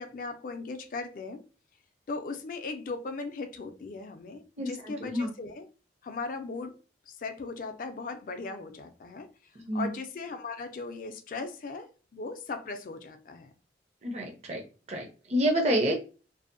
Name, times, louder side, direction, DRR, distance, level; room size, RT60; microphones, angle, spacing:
voice 1, 0.0-1.4 2.1-5.7 6.0-6.8 7.1-9.3 9.7-13.5, left 4 dB, 50° left, 0.3 m, -38 dB
voice 2, 4.6-5.3 9.6-9.9 14.0-14.6 14.9-15.9, equal, 35° right, 0.5 m, -28 dB
2.6 x 2.0 x 2.5 m
head